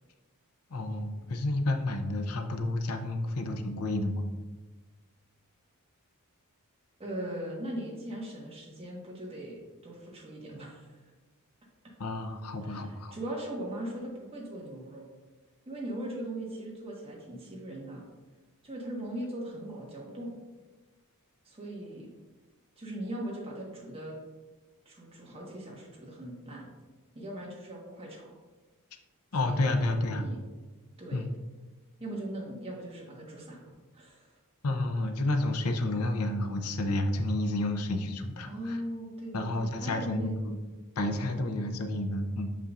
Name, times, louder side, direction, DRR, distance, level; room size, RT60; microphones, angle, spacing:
voice 1, 0.7-4.3 12.0-13.1 29.3-30.3 31.1-31.3 34.6-38.8 39.3-40.6 41.0-42.5, left 2 dB, 75° left, 5 dB, 0.6 m, -30 dB
voice 2, 7.0-10.9 12.6-15.0 15.6-18.0 18.6-20.3 21.4-22.1 22.8-24.2 24.8-26.7 27.1-28.3 29.4-30.4 31.0-31.3 32.0-33.6 33.9-34.3 38.5-40.3 41.4-41.6, right 1 dB, 25° right, -3 dB, 1.5 m, -39 dB
6.9 x 5.5 x 2.5 m, 1.2 s
head